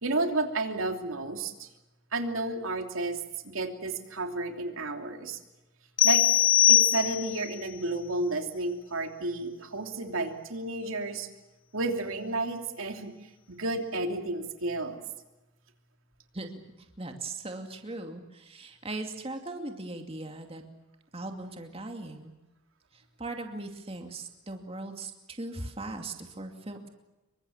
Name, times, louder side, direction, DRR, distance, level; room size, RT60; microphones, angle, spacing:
voice 1, 0.0-1.7 2.1-5.4 6.0-6.3 6.7-11.3 11.7-15.0, right 2 dB, 90° right, 4 dB, 3.1 m, -32 dB
sound 1, 6.0-7.5, left 12 dB, 70° left, 0.9 m, -21 dB
voice 2, 16.8-20.6 21.1-22.3 22.9-26.9, right 2 dB, 30° right, 4 dB, 2.4 m, -39 dB
27.5 x 24.0 x 7.3 m, 1.0 s
head